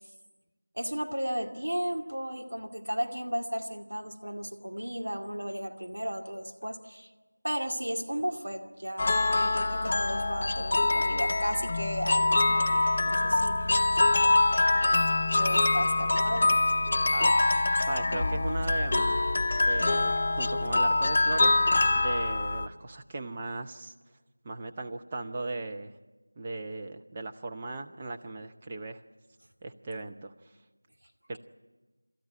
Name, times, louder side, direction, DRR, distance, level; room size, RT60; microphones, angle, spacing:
voice 1, 0.7-7.1 7.4-13.9 15.3-16.6, equal, 75° right, 3 dB, 2.3 m, -34 dB
sound 1, 9.0-22.7, left 2 dB, 30° left, 0.8 m, -25 dB
voice 2, 17.8-19.2 19.6-21.5 21.9-23.9 24.4-25.9 26.4-29.0 29.6-30.3 31.3-31.4, right 2 dB, 15° right, 5 dB, 0.7 m, -37 dB
27.5 x 13.5 x 9.9 m, 1.2 s
figure-of-eight pair, 175°, 0 cm